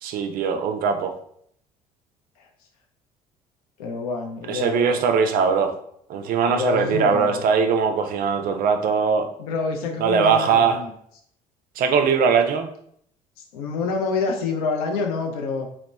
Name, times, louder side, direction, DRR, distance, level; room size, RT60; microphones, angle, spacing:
voice 1, 0.0-1.1 4.5-5.7 6.1-9.3 10.0-10.8 11.8-12.7, right 6 dB, 50° right, 7 dB, 0.4 m, -21 dB
voice 2, 3.8-5.0 6.5-7.4 9.4-10.9 13.4-15.7, left 4 dB, 75° left, 2 dB, 0.5 m, -27 dB
2.8 x 2.0 x 2.2 m, 0.67 s
hypercardioid pair, 55°, 19 cm